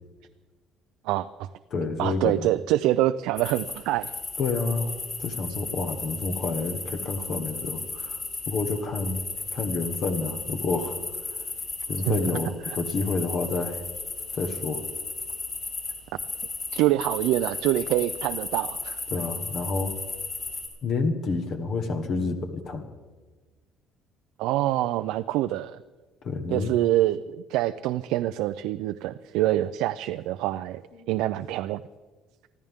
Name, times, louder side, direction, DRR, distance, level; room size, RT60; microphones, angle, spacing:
voice 1, 1.0-1.5 2.0-4.1 12.1-12.2 16.7-19.0 24.4-25.8 26.5-30.8 31.1-31.8, right 14 dB, 80° right, 10 dB, 0.5 m, -25 dB
voice 2, 1.7-2.4 4.4-4.9 5.2-9.2 9.5-11.0 11.9-13.8 14.3-14.8 19.1-20.0 20.8-22.8 26.2-26.7 31.0-31.1, left 3 dB, 40° left, 6 dB, 1.4 m, -29 dB
sound 1, 3.4-3.7 4.0-20.7, left 3 dB, 25° left, 5.0 m, -34 dB
24.5 x 14.5 x 3.6 m, 1.3 s
cardioid pair, 170°, 0 cm